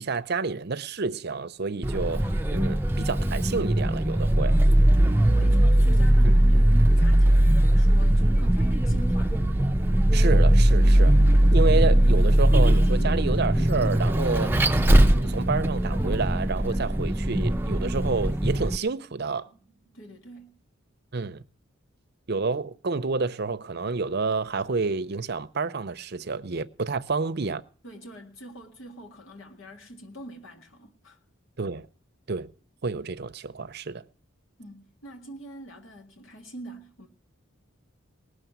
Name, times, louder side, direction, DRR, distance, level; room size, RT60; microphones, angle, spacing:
voice 1, 0.0-4.5 6.2-6.4 10.1-11.2 11.5-19.5 21.1-21.4 22.3-27.6 31.6-31.9 32.3-32.5 32.8-34.0, right 4 dB, 50° right, 0.6 m, -29 dB
Vehicle, 1.8-18.8, right 1 dB, 10° right, 0.6 m, -20 dB
voice 2, 5.1-9.4 19.9-20.6 27.8-31.2 34.6-37.1, right 1 dB, 70° left, 1.9 m, -44 dB
sound 1, 9.5-20.0, right 1 dB, 30° left, 5.2 m, -45 dB
19.5 x 6.5 x 9.3 m
head